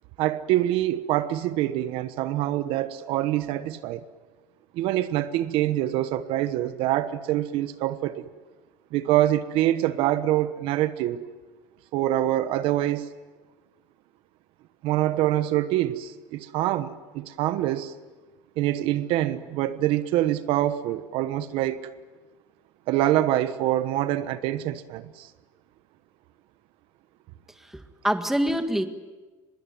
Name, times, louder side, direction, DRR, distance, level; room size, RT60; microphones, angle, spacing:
voice 1, 0.2-4.0 4.7-8.3 8.9-11.2 11.9-13.1 14.8-17.9 18.6-21.9 22.9-25.3, right 13 dB, 70° right, 1.2 m, -25 dB
voice 2, 27.6-28.9, equal, 5° right, 1.8 m, -26 dB
24.5 x 21.5 x 9.4 m
cardioid pair, 135°, 10 cm